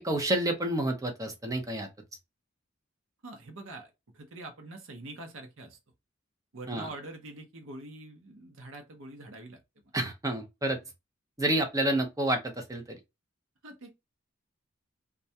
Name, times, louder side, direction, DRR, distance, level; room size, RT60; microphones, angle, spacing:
voice 1, 0.0-1.9 6.7-6.9 9.9-10.8 11.4-13.0, right 1 dB, 15° right, 0.5 m, -29 dB
voice 2, 3.2-5.8 6.5-9.6 13.6-13.9, right 2 dB, 80° right, 0.7 m, -44 dB
2.3 x 2.2 x 2.7 m
head